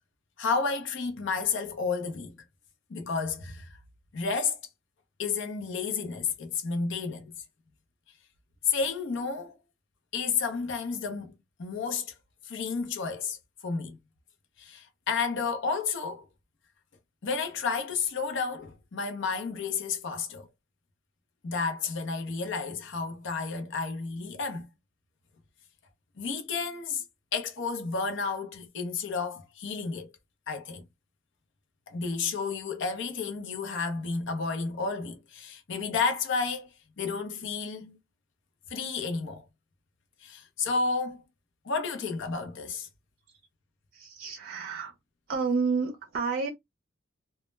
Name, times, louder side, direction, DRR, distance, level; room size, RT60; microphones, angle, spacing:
voice 1, 0.4-2.3 2.9-3.8 4.1-4.6 5.2-7.3 8.6-9.6 10.1-11.3 11.6-12.1 12.4-14.0 14.6-16.2 17.2-20.5 21.4-24.7 26.2-27.0 27.3-30.1 30.5-30.8 31.9-38.0 38.7-39.4 40.2-41.2 41.6-42.9, left 5 dB, 60° left, 0.6 m, -31 dB
voice 2, 43.9-44.9 45.3-46.5, right 4 dB, 50° right, 0.5 m, -30 dB
2.2 x 2.0 x 3.1 m
head